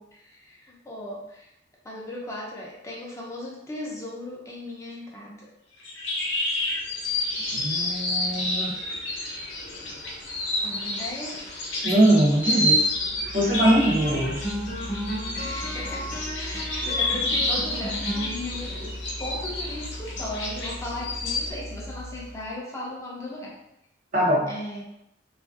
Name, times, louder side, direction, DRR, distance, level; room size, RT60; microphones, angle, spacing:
voice 1, 0.1-1.5 1.8-5.5 10.6-11.4 15.4-23.6 24.5-24.8, left 1 dB, 15° left, -4 dB, 0.4 m, -37 dB
sound 1, 5.8-21.5, left 1 dB, 85° left, 0.7 m, -29 dB
voice 2, 7.5-8.7 11.8-12.9 13.3-14.5 24.1-24.5, right 1 dB, 45° right, -3 dB, 0.6 m, -22 dB
sound 2, 12.8-22.4, equal, 45° left, 0.7 m, -35 dB
2.7 x 2.4 x 2.4 m, 0.83 s
head